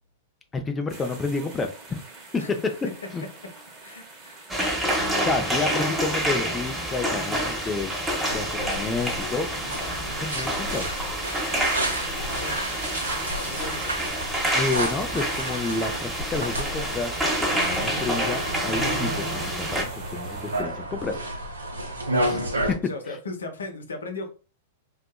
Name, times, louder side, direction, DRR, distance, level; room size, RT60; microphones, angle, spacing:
voice 1, 0.5-2.0 2.3-2.7 3.1-3.2 5.2-7.9 8.3-9.5 10.2-10.9 14.5-21.2 22.3-22.8, left 3 dB, 15° left, 6 dB, 0.3 m, -30 dB
sound 1, 0.9-20.6, right 3 dB, 25° right, 1.0 m, -44 dB
voice 2, 3.8-4.5 4.9-5.3 12.2-12.6 13.5-13.8 22.8-24.3, left 3 dB, 75° left, 3 dB, 0.6 m, -37 dB
sound 2, 4.5-19.8, right 1 dB, 10° right, 0.8 m, -28 dB
sound 3, 8.3-22.7, right 1 dB, 85° right, 0.7 m, -32 dB
2.6 x 2.3 x 2.2 m, 0.35 s
figure-of-eight pair, 100°, 0 cm